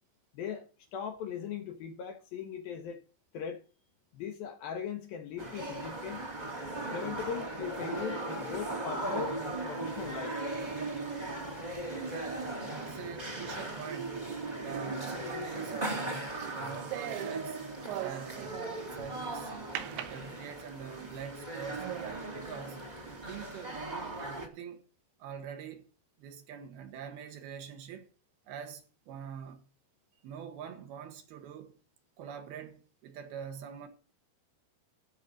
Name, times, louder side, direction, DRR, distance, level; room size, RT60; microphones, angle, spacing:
voice 1, 0.3-0.7 0.9-3.0 3.3-3.6 4.1-6.3 6.9-10.4, left 7 dB, 70° left, 2.4 m, -39 dB
sound 1, 5.4-24.5, right 2 dB, 20° right, 1.0 m, -38 dB
voice 2, 12.8-14.3 14.6-17.7 18.0-19.5 19.9-24.9 25.2-25.9 26.2-28.1 28.5-29.6 30.2-31.8 32.2-33.9, right 8 dB, 65° right, 2.9 m, -45 dB
sound 2, 14.7-19.1 19.8-20.9 21.4-21.5 21.8-22.3, right 12 dB, 90° right, 3.4 m, -42 dB
13.0 x 5.6 x 6.4 m
omnidirectional pair, 5.1 m